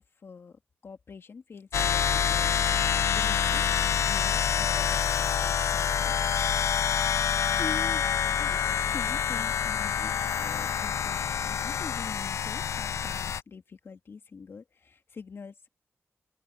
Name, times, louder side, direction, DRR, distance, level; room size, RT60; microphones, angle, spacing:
voice 1, 0.0-3.7 4.0-6.1 7.6-8.0 8.4-15.7, left 5 dB, 55° left, 2.3 m, -44 dB
sound 1, 1.7-13.4, left 8 dB, 80° left, 0.4 m, -27 dB
open air
wide cardioid pair, 130°, 5 cm